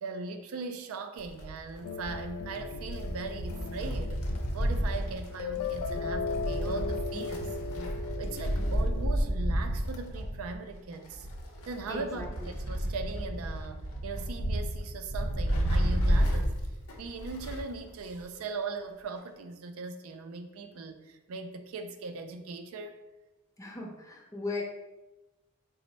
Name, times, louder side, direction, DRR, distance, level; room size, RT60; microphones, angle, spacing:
voice 1, 0.0-4.2 4.5-7.6 8.2-11.3 11.7-16.6 17.0-22.9, right 4 dB, 70° right, 6 dB, 0.4 m, -39 dB
Wind, 1.2-17.8 18.1-18.2 19.2-19.3, equal, 70° left, 0.7 m, -31 dB
sound 1, 1.8-9.1, left 4 dB, 90° left, 0.3 m, -37 dB
voice 2, 11.9-12.3 23.6-24.6, left 2 dB, 15° left, -1 dB, 0.6 m, -37 dB
4.2 x 2.0 x 4.0 m, 1.1 s
head